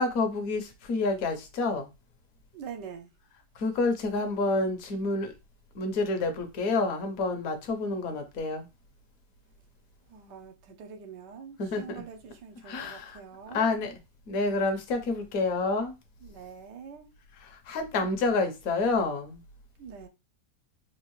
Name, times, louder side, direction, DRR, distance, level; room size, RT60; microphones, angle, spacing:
voice 1, 0.0-1.9 3.6-5.3 5.7-8.7 11.6-12.0 12.6-13.2 13.5-13.9 14.3-15.9 17.4-19.4, left 3 dB, 60° left, 1.1 m, -28 dB
voice 2, 2.5-3.1 10.1-13.8 16.2-17.1 19.8-20.1, right 6 dB, 85° right, 1.4 m, -44 dB
4.5 x 2.4 x 3.0 m
omnidirectional pair, 1.8 m